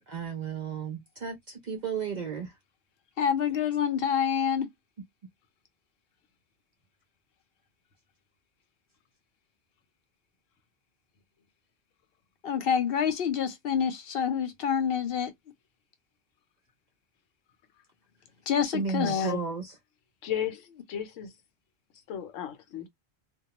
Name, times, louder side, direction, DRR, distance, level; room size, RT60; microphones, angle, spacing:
voice 1, 0.1-2.6 18.6-19.8, right 6 dB, 55° right, 0.5 m, -34 dB
voice 2, 3.2-4.7 12.4-15.3 18.5-19.3, left 8 dB, 60° left, 0.7 m, -27 dB
voice 3, 19.0-19.4 20.2-21.3 22.1-22.9, left 8 dB, 85° left, 1.0 m, -33 dB
2.2 x 2.2 x 2.8 m
omnidirectional pair, 1.3 m